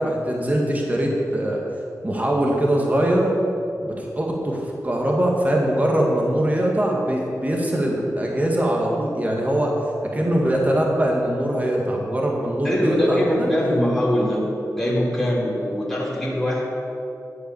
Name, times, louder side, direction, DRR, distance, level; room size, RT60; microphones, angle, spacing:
voice 1, 0.0-1.6 2.0-3.4 3.8-9.7 10.1-13.5, right 1 dB, 25° right, -1 dB, 2.0 m, -22 dB
voice 2, 12.6-14.5 14.7-16.6, left 1 dB, 5° left, -7 dB, 3.2 m, -22 dB
11.5 x 8.3 x 7.2 m, 2.7 s
wide cardioid pair, 90°, 6 cm